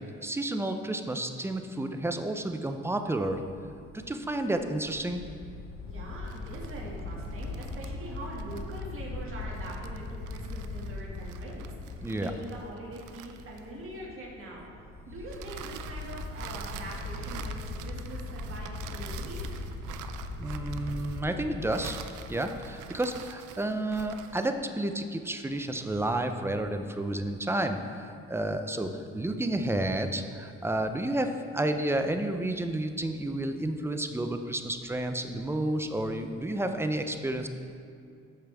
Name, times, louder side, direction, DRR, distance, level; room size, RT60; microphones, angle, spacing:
voice 1, 0.2-3.4 4.1-5.2 12.0-12.3 20.4-22.0 22.3-37.5, right 1 dB, 10° right, 6 dB, 0.5 m, -31 dB
sound 1, 3.5-22.7, left 3 dB, 80° left, 1.0 m, -40 dB
voice 2, 5.8-14.7 15.1-19.4, right 1 dB, 45° right, -3 dB, 2.2 m, -43 dB
sound 2, 6.2-14.0 15.3-24.6, right 9 dB, 90° right, 0.5 m, -46 dB
13.0 x 5.1 x 3.5 m, 2.4 s
cardioid pair, 90°, 30 cm